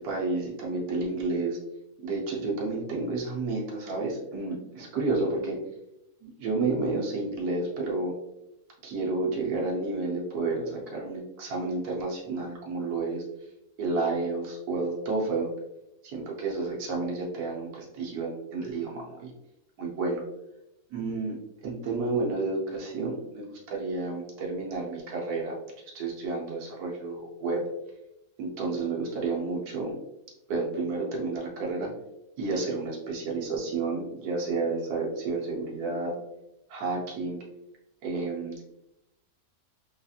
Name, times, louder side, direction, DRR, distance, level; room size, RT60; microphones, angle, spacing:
voice 1, 0.0-1.6 2.0-5.6 6.2-8.1 8.8-13.2 13.8-15.5 16.0-19.3 19.8-20.2 20.9-21.4 21.6-25.6 25.9-27.6 28.4-29.9 30.5-31.9 32.4-36.1 36.7-37.4 38.0-38.6, right 3 dB, 85° right, -1 dB, 1.3 m, -30 dB
3.8 x 2.7 x 2.4 m, 0.89 s
omnidirectional pair, 1.6 m